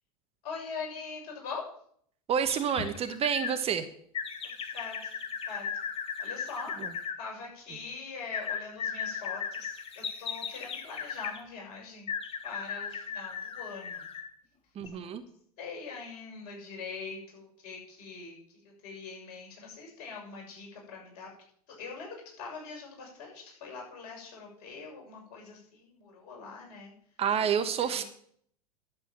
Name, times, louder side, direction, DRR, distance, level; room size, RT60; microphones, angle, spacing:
voice 1, 0.4-1.7 4.4-5.0 5.5-5.7 6.2-6.8 7.2-12.1 12.4-14.0 15.6-18.4 18.8-21.3 21.7-26.9 27.5-28.0, left 4 dB, 50° left, -1 dB, 7.0 m, -43 dB
voice 2, 2.3-3.8 6.8-6.9 14.7-15.2 27.2-28.0, right 8 dB, 30° right, 9 dB, 1.3 m, -29 dB
sound 1, 2.5-3.6 4.1-7.2 8.3-11.4 12.1-14.3 14.8-14.9, left 6 dB, 30° left, 1.8 m, -37 dB
11.5 x 8.3 x 7.7 m, 0.64 s
figure-of-eight pair, 90°, 20 cm